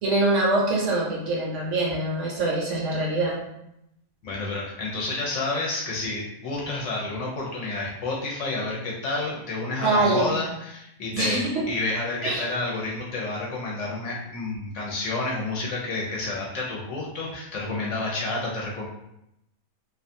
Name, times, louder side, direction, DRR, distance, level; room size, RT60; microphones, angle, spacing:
voice 1, 0.0-3.4 9.8-10.3 11.1-11.6 12.2-12.5, right 2 dB, 65° right, -3 dB, 0.8 m, -24 dB
voice 2, 4.2-18.9, left 2 dB, 65° left, -3 dB, 0.8 m, -30 dB
2.4 x 2.2 x 2.6 m, 0.82 s
omnidirectional pair, 1.5 m